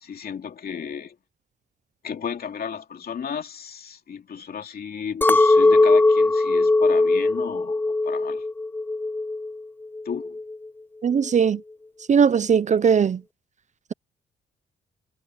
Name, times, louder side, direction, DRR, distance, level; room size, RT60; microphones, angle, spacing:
voice 1, 0.0-1.2 2.0-8.5 10.0-10.4, left 7 dB, 50° left, 2.7 m, -33 dB
Chink clink, 5.2-9.6 9.9-10.6, left 2 dB, 10° left, 0.4 m, -20 dB
voice 2, 11.0-11.6 12.1-13.2, right 7 dB, 35° right, 0.6 m, -19 dB
cardioid pair, 90°, 20 cm